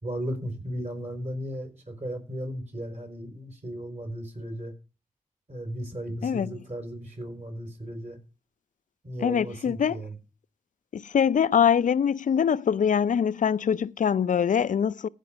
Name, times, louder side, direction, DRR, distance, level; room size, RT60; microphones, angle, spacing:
voice 1, 0.0-4.7 5.5-8.2 9.0-10.1, equal, 50° right, 4.8 m, -35 dB
voice 2, 6.2-6.5 9.2-10.0 10.9-15.1, left 7 dB, 60° left, 0.4 m, -23 dB
15.5 x 5.2 x 5.2 m
cardioid pair, 40°, 15 cm